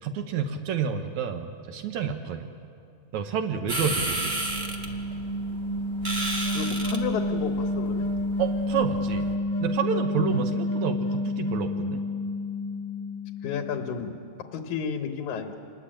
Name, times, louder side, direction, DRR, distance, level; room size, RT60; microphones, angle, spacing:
voice 1, 0.0-2.5 3.1-4.4 8.4-9.3 9.6-12.0, right 7 dB, 80° right, 6 dB, 2.4 m, -29 dB
sound 1, 3.7-9.3, right 1 dB, 25° right, 1.7 m, -33 dB
sound 2, 3.8-13.9, left 1 dB, 40° left, 6.4 m, -30 dB
voice 2, 6.5-8.0 10.3-10.5 13.4-14.2 14.5-15.6, left 7 dB, 90° left, 5 dB, 2.7 m, -32 dB
27.5 x 20.5 x 8.8 m, 2.6 s
omnidirectional pair, 3.3 m